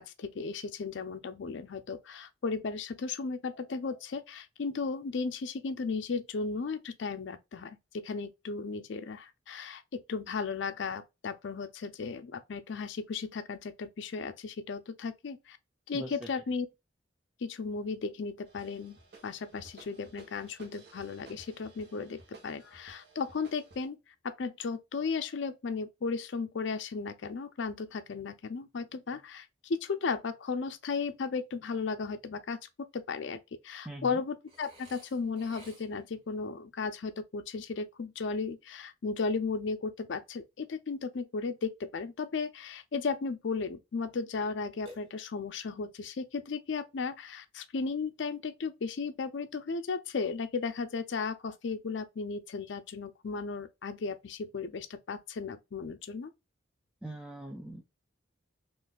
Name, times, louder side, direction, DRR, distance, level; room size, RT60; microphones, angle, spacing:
voice 1, 0.0-15.6 15.9-16.7 17.4-19.0 19.2-24.0 24.2-56.3, left 4 dB, 65° left, 0.4 m, -35 dB
sound 1, 18.4-23.9, right 3 dB, 55° right, 0.9 m, -56 dB
voice 2, 33.9-34.2 57.0-57.8, right 1 dB, 5° right, 0.3 m, -41 dB
Burping eructation, 34.5-36.2 44.9-45.6, equal, 30° right, 1.1 m, -54 dB
3.8 x 2.5 x 2.2 m
head